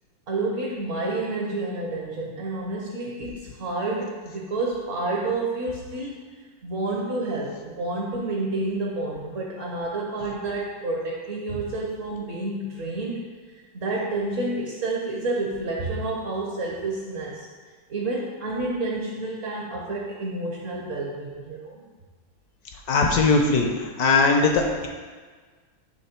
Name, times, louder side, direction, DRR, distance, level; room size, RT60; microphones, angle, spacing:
voice 1, 0.3-6.1 6.6-13.3 13.7-17.5 17.9-21.8, right 2 dB, 55° right, -2 dB, 0.9 m, -29 dB
voice 2, 22.9-24.9, left 3 dB, 65° left, 2 dB, 1.0 m, -20 dB
7.8 x 3.1 x 4.3 m, 1.5 s
omnidirectional pair, 2.1 m